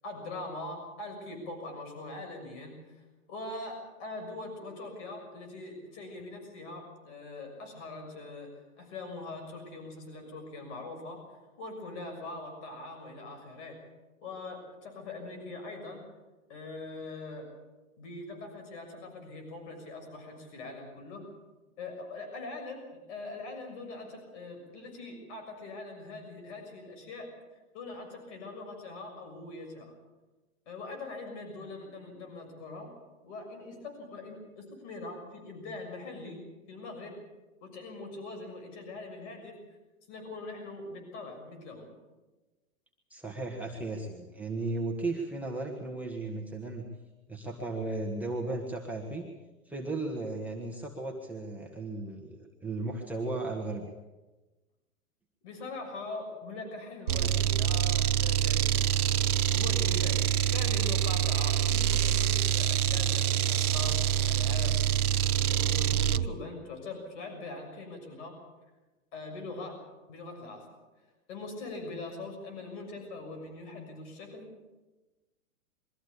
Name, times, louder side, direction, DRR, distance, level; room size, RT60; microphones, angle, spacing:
voice 1, 0.0-3.0 3.3-11.2 11.6-13.8 14.2-16.0 16.5-17.5 18.0-21.3 21.8-27.3 27.7-29.9 30.7-32.9 33.2-36.4 36.7-37.2 37.6-39.6 40.1-41.9 55.4-58.9 59.5-64.8 65.4-68.3 69.1-69.8 70.1-70.6 71.3-74.5, left 2 dB, 50° left, 4 dB, 6.6 m, -42 dB
voice 2, 43.1-46.9 47.3-49.3 49.7-53.9, right 2 dB, 5° right, -2 dB, 2.0 m, -35 dB
sound 1, 57.1-66.3, right 10 dB, 80° right, 0.8 m, -26 dB
23.0 x 14.5 x 8.5 m, 1.1 s
hypercardioid pair, 130°, 44 cm